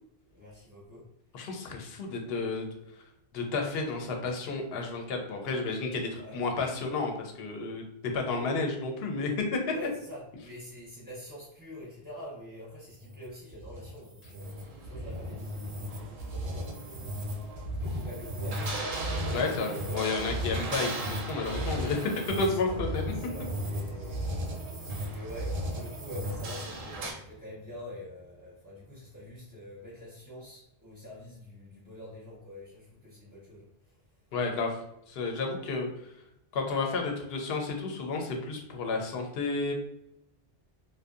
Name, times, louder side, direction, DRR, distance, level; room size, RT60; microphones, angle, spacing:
voice 1, 0.3-1.1 6.2-6.4 9.7-17.1 17.8-18.9 19.3-20.4 22.2-22.8 23.1-24.2 25.1-34.0, left 1 dB, 10° right, -8 dB, 0.5 m, -45 dB
voice 2, 1.3-2.7 3.3-7.8 8.1-9.6 19.3-22.1 22.4-23.1 34.3-34.8 35.1-36.1 36.5-39.7, left 3 dB, 75° left, 2 dB, 0.8 m, -31 dB
sound 1, 12.9-26.7, equal, 85° right, 0.9 m, -36 dB
sound 2, 14.4-27.1, right 3 dB, 60° right, 0.6 m, -41 dB
sound 3, 20.4-30.0, right 2 dB, 55° left, 0.4 m, -48 dB
2.6 x 2.2 x 2.4 m, 0.79 s
omnidirectional pair, 1.1 m